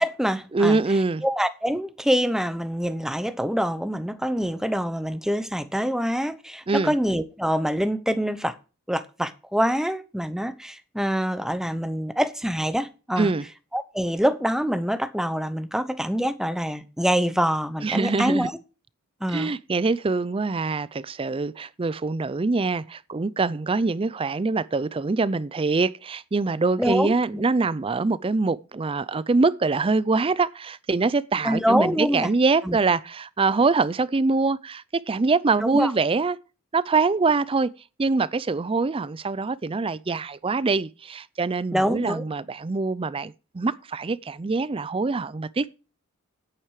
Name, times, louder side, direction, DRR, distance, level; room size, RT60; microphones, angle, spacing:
voice 1, 0.0-0.8 1.2-8.5 8.9-13.3 13.7-18.5 19.2-19.5 26.8-27.1 31.4-32.3 32.6-32.8 35.6-35.9 41.7-42.2, equal, ahead, 0.8 m, -25 dB
voice 2, 0.5-1.2 6.7-6.9 13.2-13.4 17.8-18.5 19.3-36.4 36.7-37.7 38.0-45.8, right 3 dB, 25° right, 0.4 m, -24 dB
9.9 x 8.9 x 4.8 m
head